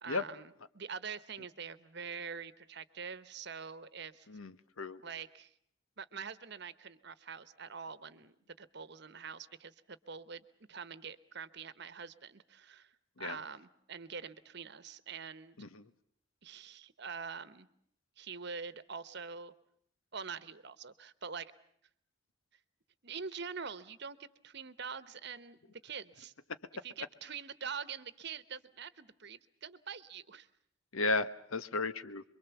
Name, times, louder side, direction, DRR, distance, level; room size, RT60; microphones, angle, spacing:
voice 1, 0.0-4.3 5.0-5.5 6.0-12.9 13.2-15.6 16.4-17.7 18.2-19.5 20.1-21.5 23.0-26.3 26.8-30.5, right 6 dB, 55° right, 15 dB, 1.1 m, -45 dB
voice 2, 4.3-5.0 13.2-13.4 15.6-15.9 30.9-32.2, left 3 dB, 85° left, 12 dB, 1.2 m, -34 dB
27.0 x 23.0 x 7.1 m, 0.68 s
head